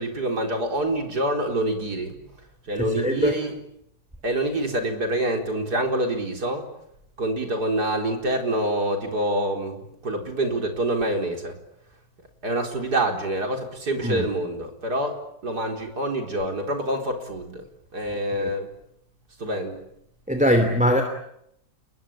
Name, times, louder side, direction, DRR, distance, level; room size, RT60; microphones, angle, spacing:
voice 1, 0.0-2.2 2.7-3.5 4.2-6.7 7.2-11.6 12.4-17.6 17.9-18.7 19.4-19.8, right 1 dB, 75° right, 3 dB, 4.9 m, -26 dB
voice 2, 2.8-3.3 14.0-14.2 18.3-18.5 20.3-21.0, equal, 5° right, 6 dB, 2.9 m, -21 dB
30.0 x 22.0 x 9.0 m, 0.77 s
omnidirectional pair, 1.8 m